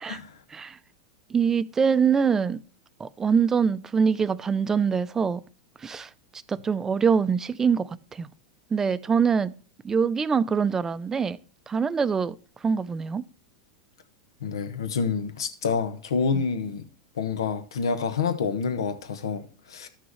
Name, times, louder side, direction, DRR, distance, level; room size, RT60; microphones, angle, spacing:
voice 1, 1.3-2.6 3.0-5.4 5.8-6.1 6.5-8.3 8.7-9.5 9.8-11.4 11.7-12.3 12.6-13.2 16.3-16.4, right 6 dB, 20° right, 0.5 m, -24 dB
voice 2, 14.4-16.8 17.2-19.9, left 5 dB, 90° left, 1.1 m, -28 dB
13.5 x 6.1 x 3.1 m
hypercardioid pair, 115°, 2 cm